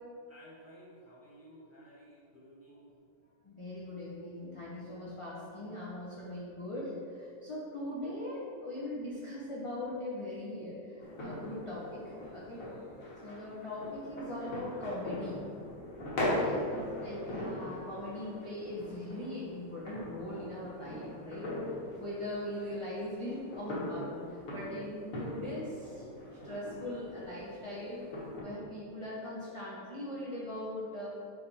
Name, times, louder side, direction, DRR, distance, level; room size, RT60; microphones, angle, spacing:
voice 1, 0.3-2.9, equal, 10° right, -8 dB, 1.2 m, -55 dB
voice 2, 3.4-12.6 13.2-15.4 16.3-16.6 17.0-21.5 22.0-26.1 26.4-28.1 28.4-31.1, left 1 dB, 25° left, -8 dB, 0.7 m, -40 dB
sound 1, 11.0-28.4, left 1 dB, 50° left, 1.7 m, -40 dB
5.2 x 5.1 x 4.2 m, 2.4 s
omnidirectional pair, 1.9 m